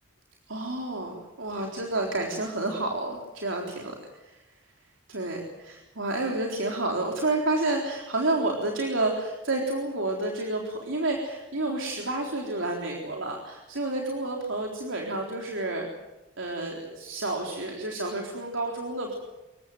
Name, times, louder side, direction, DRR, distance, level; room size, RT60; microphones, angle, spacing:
voice 1, 0.5-3.9 4.2-4.4 5.1-15.9 16.4-19.2, right 2 dB, 90° right, 1 dB, 3.9 m, -30 dB
27.5 x 15.5 x 9.4 m, 1.0 s
head